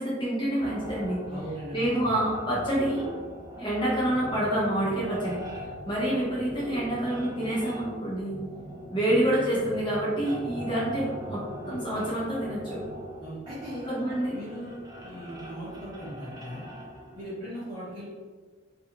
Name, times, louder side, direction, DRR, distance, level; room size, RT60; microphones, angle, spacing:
voice 1, 0.0-1.2 1.7-3.1 3.6-5.4 5.9-8.4 8.9-12.8 13.9-14.4, right 1 dB, 25° left, -8 dB, 0.9 m, -27 dB
sound 1, 0.6-17.2, equal, 20° right, 0.4 m, -41 dB
voice 2, 1.3-2.0 13.2-13.9 14.3-16.7 17.1-18.0, equal, 35° right, -14 dB, 0.9 m, -39 dB
2.6 x 2.4 x 2.8 m, 1.5 s
head